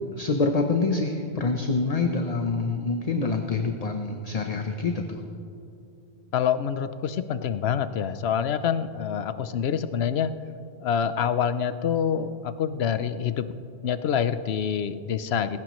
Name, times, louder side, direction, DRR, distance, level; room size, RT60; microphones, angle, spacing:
voice 1, 0.2-5.2, left 3 dB, 40° left, 4 dB, 0.8 m, -26 dB
voice 2, 6.3-10.3 10.8-13.4 13.8-15.6, left 8 dB, 70° left, 12 dB, 0.9 m, -26 dB
19.5 x 16.5 x 3.1 m, 2.6 s
omnidirectional pair, 1.1 m